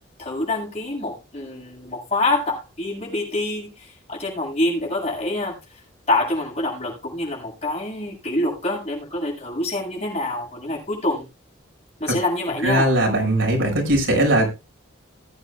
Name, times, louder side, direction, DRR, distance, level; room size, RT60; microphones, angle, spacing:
voice 1, 0.2-5.8 6.1-11.3 12.0-12.9, left 2 dB, 30° left, 7.4 m, -26 dB
voice 2, 12.6-14.5, right 1 dB, 80° right, 6.1 m, -19 dB
20.0 x 9.1 x 2.4 m
head